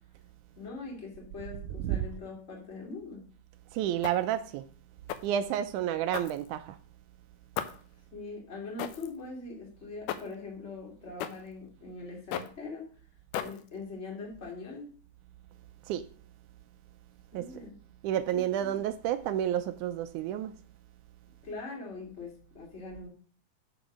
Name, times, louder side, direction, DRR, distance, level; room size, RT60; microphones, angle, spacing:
voice 1, 0.5-3.3 8.1-12.9 13.4-14.8 17.3-17.8 18.3-18.9 21.4-23.1, left 3 dB, 20° left, 2.6 m, -42 dB
voice 2, 3.7-4.6 5.2-6.8 15.9-16.0 17.3-17.5 18.0-20.5, right 11 dB, 80° right, 1.8 m, -30 dB
sound 1, 4.0-4.4 5.1-5.4 6.1-6.8 7.6-7.9 8.8-9.2 10.1-10.4 11.2-11.5 12.3-12.6 13.3-13.8, left 10 dB, 75° left, 2.1 m, -37 dB
6.7 x 6.3 x 6.1 m
omnidirectional pair, 3.9 m